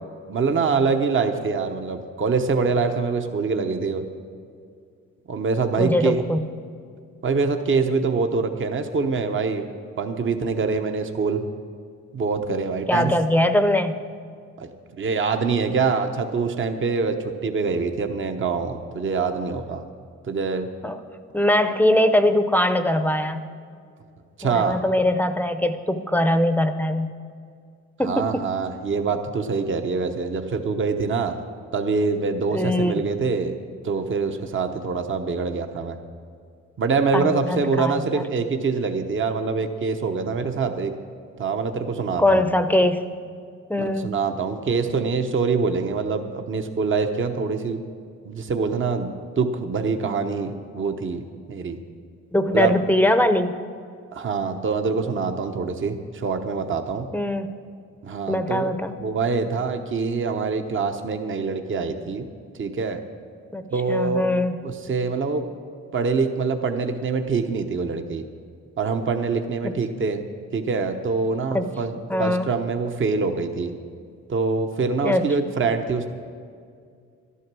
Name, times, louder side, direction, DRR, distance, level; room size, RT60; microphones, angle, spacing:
voice 1, 0.3-4.0 5.3-6.2 7.2-9.7 10.0-11.5 12.1-13.1 14.6-14.7 15.0-19.8 20.3-20.7 24.4-24.8 28.0-31.4 31.7-33.6 33.8-36.0 36.8-40.9 41.4-42.4 43.8-47.8 48.2-51.8 52.5-52.7 54.1-57.1 58.0-58.7 59.0-62.2 62.6-63.0 63.7-64.3 64.6-65.5 65.9-68.2 68.8-70.2 70.5-73.7 74.3-76.1, right 4 dB, 40° right, 6 dB, 1.0 m, -25 dB
voice 2, 5.8-6.4 12.9-14.0 20.8-21.0 21.3-23.4 24.4-27.1 28.0-28.5 32.5-32.9 37.1-38.2 42.2-43.0 43.7-44.2 52.3-53.6 57.1-57.5 58.3-58.9 63.5-64.6 71.5-71.7 72.1-72.5 75.0-75.3, left 1 dB, 5° left, 10 dB, 0.7 m, -21 dB
12.0 x 11.5 x 6.1 m, 2.2 s
cardioid pair, 90°, 30 cm